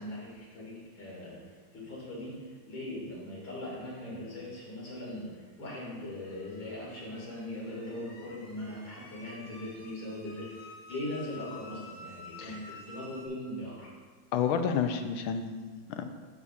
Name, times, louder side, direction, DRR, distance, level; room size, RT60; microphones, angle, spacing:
voice 1, 0.0-1.4 1.7-10.5 10.9-13.9, left 1 dB, 70° left, -6 dB, 3.0 m, -40 dB
sound 1, 5.7-13.3, left 3 dB, 50° left, 1.1 m, -51 dB
voice 2, 14.3-16.1, left 7 dB, 85° left, 7 dB, 1.4 m, -30 dB
12.0 x 5.5 x 2.4 m, 1.5 s
omnidirectional pair, 2.2 m